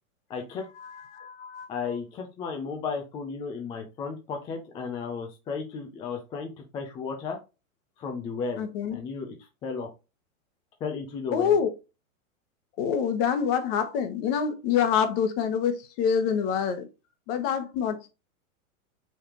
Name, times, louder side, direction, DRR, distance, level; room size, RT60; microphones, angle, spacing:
voice 1, 0.3-0.7 1.7-7.4 8.0-8.6 8.9-9.9 10.8-11.6, left 5 dB, 10° left, 0.4 m, -34 dB
voice 2, 1.1-1.7 8.6-9.0 11.3-11.7 12.8-16.9 17.3-18.1, left 7 dB, 40° left, 1.2 m, -26 dB
4.9 x 3.5 x 2.9 m
hypercardioid pair, 130°, 42 cm